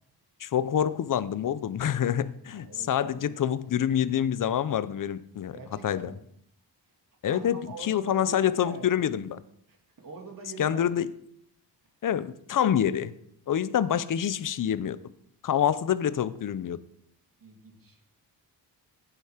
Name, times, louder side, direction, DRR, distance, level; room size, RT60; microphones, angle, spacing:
voice 1, 0.4-5.6 5.8-6.1 7.2-9.4 10.6-11.1 12.0-13.1 13.5-15.0 15.4-16.8, left 9 dB, 50° left, 15 dB, 0.6 m, -27 dB
voice 2, 2.5-3.4 5.5-6.2 7.3-8.9 9.7-10.8 17.4-18.0, right 3 dB, 50° right, 2 dB, 2.7 m, -44 dB
15.0 x 8.2 x 5.0 m, 0.71 s
wide cardioid pair, 145°, 43 cm